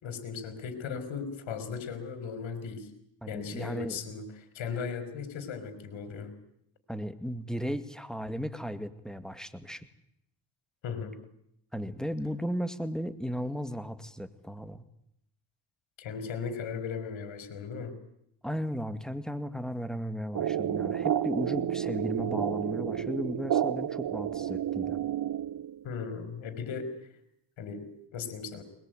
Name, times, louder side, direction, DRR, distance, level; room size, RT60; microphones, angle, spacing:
voice 1, 0.0-2.9 3.3-4.3 4.5-6.3 10.8-11.1 16.0-17.9 25.8-26.9 27.6-27.8 28.1-28.6, left 6 dB, 75° left, 10 dB, 4.7 m, -37 dB
voice 2, 3.2-4.0 6.9-9.9 11.7-14.8 18.4-25.0, equal, ahead, 11 dB, 2.1 m, -35 dB
sound 1, 20.3-25.9, right 10 dB, 50° right, 0.9 m, -31 dB
21.5 x 21.0 x 9.2 m, 0.77 s
cardioid pair, 80°, 47 cm